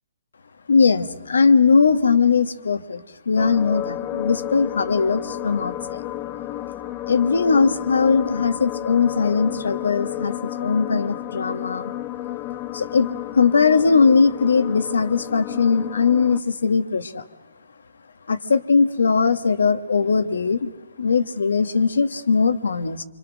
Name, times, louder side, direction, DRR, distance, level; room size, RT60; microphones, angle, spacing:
voice 1, 0.7-6.0 7.1-11.9 12.7-13.1 13.3-17.2 18.3-20.7 21.0-23.0, left 5 dB, 80° left, 10 dB, 1.3 m, -20 dB
sound 1, 3.4-16.4, left 13 dB, 25° left, 0.8 m, -32 dB
26.0 x 24.5 x 6.3 m, 1.1 s
hypercardioid pair, 140°, 0 cm